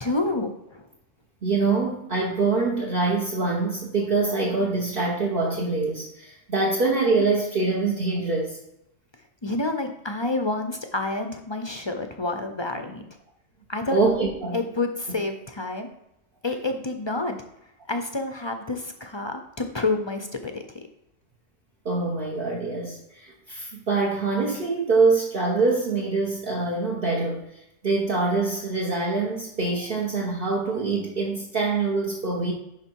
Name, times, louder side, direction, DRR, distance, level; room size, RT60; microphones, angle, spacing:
voice 1, 0.0-0.8 9.4-13.1 13.7-14.0 14.5-15.9 16.4-17.4 17.9-20.8, left 2 dB, 30° left, 6 dB, 0.6 m, -28 dB
voice 2, 1.4-8.6 13.9-14.6 21.8-27.4 27.8-32.5, right 3 dB, 50° right, -3 dB, 1.2 m, -24 dB
11.0 x 3.7 x 4.6 m, 0.83 s
omnidirectional pair, 1.2 m